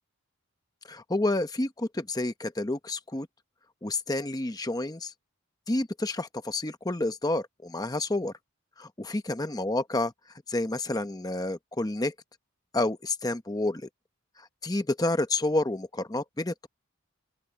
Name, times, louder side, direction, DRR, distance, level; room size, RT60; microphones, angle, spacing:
voice 1, 0.9-3.3 3.8-5.1 5.7-8.3 8.8-10.1 10.5-12.1 12.7-13.9 14.4-16.7, left 2 dB, 20° left, 0.8 m, -29 dB
open air
head